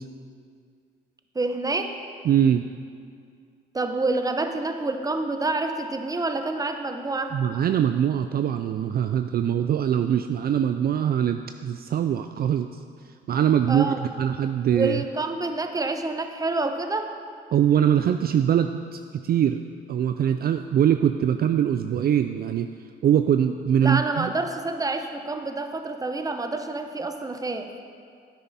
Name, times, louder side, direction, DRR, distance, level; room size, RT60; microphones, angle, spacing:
voice 1, 1.3-1.9 3.7-7.4 13.7-14.0 14.7-17.1 23.8-27.7, right 2 dB, 20° right, 6 dB, 0.8 m, -28 dB
voice 2, 2.3-2.7 7.3-12.8 13.3-15.0 17.5-19.6 19.9-22.7 23.0-24.3, right 9 dB, 50° right, 8 dB, 0.4 m, -22 dB
9.9 x 9.4 x 4.2 m, 2.2 s
cardioid pair, 90°, 20 cm